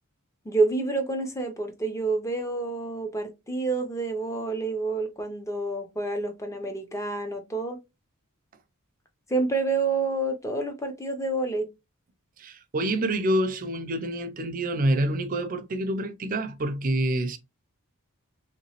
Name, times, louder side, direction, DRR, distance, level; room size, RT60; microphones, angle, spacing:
voice 1, 0.5-7.8 9.3-11.7, right 3 dB, 15° left, 0.5 m, -28 dB
voice 2, 12.4-17.4, right 1 dB, 40° right, 0.4 m, -27 dB
3.0 x 2.9 x 2.9 m
head